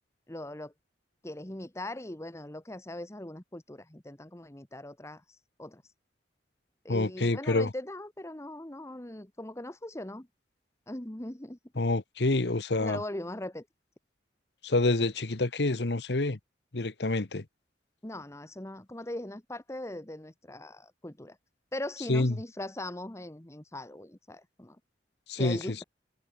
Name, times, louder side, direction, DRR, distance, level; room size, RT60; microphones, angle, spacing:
voice 1, 0.3-0.7 1.2-5.8 6.8-10.3 10.9-11.6 12.8-13.6 18.0-21.4 21.7-24.8 25.4-25.8, left 1 dB, 15° left, 1.3 m, -40 dB
voice 2, 6.9-7.7 11.8-13.0 14.6-16.4 16.7-17.4 22.1-22.3 25.3-25.6, left 2 dB, 70° left, 1.2 m, -27 dB
head